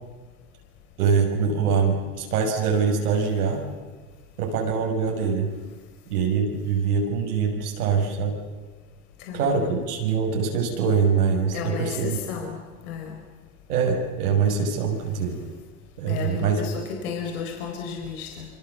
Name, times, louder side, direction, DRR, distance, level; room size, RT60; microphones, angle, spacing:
voice 1, 1.0-3.6 4.4-5.5 6.1-8.4 9.3-12.2 13.7-15.4 16.0-16.6, right 6 dB, 85° right, 1 dB, 6.5 m, -23 dB
voice 2, 9.2-9.8 11.5-12.6 12.8-13.2 16.1-18.5, left 6 dB, 70° left, 3 dB, 4.5 m, -33 dB
26.0 x 25.5 x 7.3 m, 1.4 s
hypercardioid pair, 100°, 44 cm